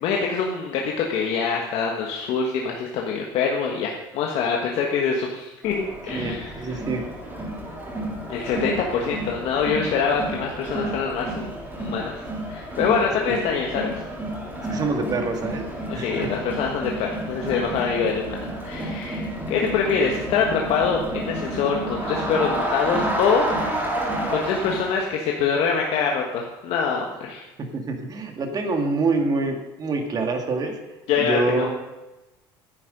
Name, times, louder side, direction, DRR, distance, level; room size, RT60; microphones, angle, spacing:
voice 1, 0.0-6.8 8.3-12.2 12.5-13.9 15.9-23.4 23.9-27.4 31.1-31.7, left 6 dB, 60° left, 0 dB, 1.4 m, -25 dB
Crowd, 5.6-25.1, right 1 dB, 20° right, 4.0 m, -30 dB
voice 2, 6.1-7.1 13.3-13.4 14.7-15.7 15.9-16.3 27.6-30.8 31.2-31.7, right 3 dB, 35° right, 4 dB, 2.1 m, -26 dB
10.5 x 8.7 x 5.3 m, 1.1 s
supercardioid pair, 100°, 11 cm